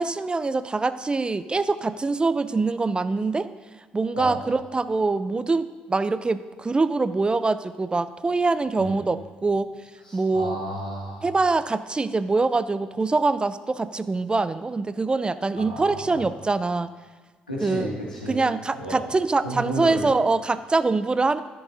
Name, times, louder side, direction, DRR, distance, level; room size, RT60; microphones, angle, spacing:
voice 1, 0.0-3.5 3.9-9.7 10.1-10.6 11.2-16.9 17.6-17.9 18.3-21.4, right 3 dB, 20° right, 14 dB, 0.4 m, -24 dB
voice 2, 10.0-11.2 15.5-16.2 17.5-18.4 18.8-19.0 19.4-20.1, equal, 90° left, -4 dB, 1.8 m, -32 dB
13.5 x 6.8 x 3.9 m, 1.4 s
figure-of-eight pair, 45°, 4 cm